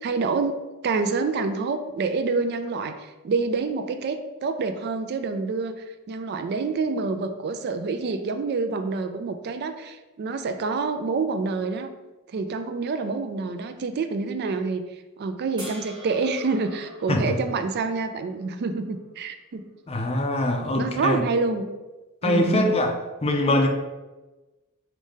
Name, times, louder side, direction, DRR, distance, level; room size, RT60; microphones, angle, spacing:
voice 1, 0.0-11.9 12.3-14.8 15.2-19.6 20.8-21.7 22.2-22.8, right 4 dB, 50° right, 8 dB, 0.3 m, -27 dB
sound 1, 15.6-18.8 20.9-21.0, right 1 dB, 20° right, 1.2 m, -45 dB
voice 2, 19.9-21.2 22.2-23.0 23.2-23.7, left 1 dB, 30° left, 3 dB, 0.5 m, -23 dB
4.8 x 2.7 x 3.6 m, 1.1 s
head